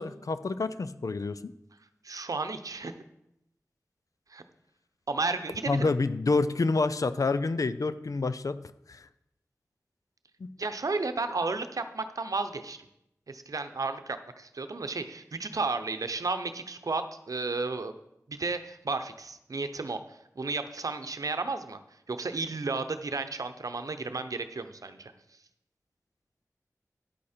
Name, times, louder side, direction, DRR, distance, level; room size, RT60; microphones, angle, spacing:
voice 1, 0.0-1.5 5.7-9.1 10.4-10.5, left 3 dB, 70° left, 13 dB, 0.5 m, -28 dB
voice 2, 2.0-2.9 4.3-4.4 5.1-5.9 10.6-12.8 13.3-17.9 18.3-21.8 22.1-25.1, right 3 dB, 70° right, 9 dB, 0.8 m, -33 dB
10.0 x 8.5 x 4.4 m, 0.82 s
wide cardioid pair, 55°, 6 cm